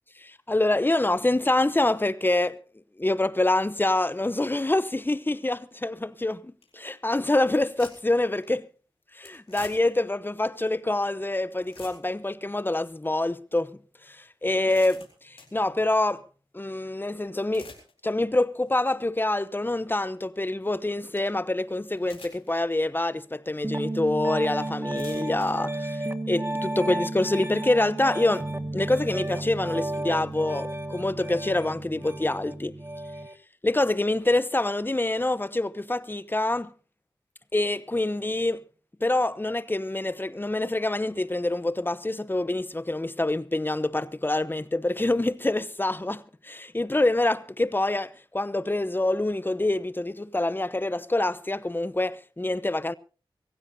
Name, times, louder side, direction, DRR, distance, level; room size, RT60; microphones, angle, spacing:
voice 1, 0.2-2.6 3.0-8.7 9.1-13.8 14.1-16.2 16.5-17.7 18.0-28.5 28.7-32.8 33.6-36.7 37.5-38.6 39.0-52.9, left 2 dB, 20° left, 0.8 m, -26 dB
sound 1, 6.1-6.2 6.6-6.8 7.4-8.2 8.4-8.6 9.2-10.1 10.7-10.8 11.2-11.3 11.5-12.3 12.8-12.9 13.6-13.7 14.3-15.6 17.2-17.9 18.4-18.7 19.2-19.3 20.8-20.9 21.2-21.3 22.0-22.6 23.1-23.2 24.0-24.1 24.7-25.5, left 4 dB, 90° left, 4.3 m, -48 dB
Piano, 23.6-33.3, right 1 dB, 25° right, 1.5 m, -32 dB
24.5 x 15.5 x 2.7 m
cardioid pair, 45°, 9 cm